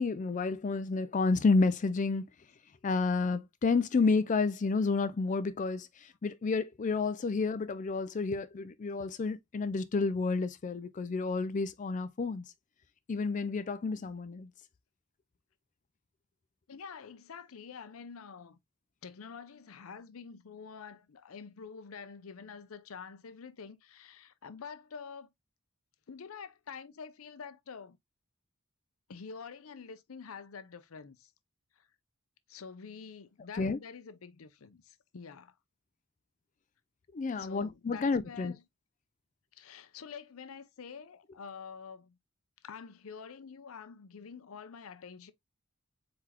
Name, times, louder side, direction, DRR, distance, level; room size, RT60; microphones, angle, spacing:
voice 1, 0.0-2.3 2.8-12.4 13.1-14.5 33.6-33.8 37.1-38.5, left 4 dB, 35° left, 0.4 m, -30 dB
voice 2, 16.7-18.6 19.0-25.3 26.1-28.0 29.1-31.3 31.8-31.9 32.5-35.5 37.3-38.6 39.5-42.2 42.6-45.3, left 6 dB, 85° left, 0.6 m, -47 dB
4.4 x 3.9 x 2.9 m
head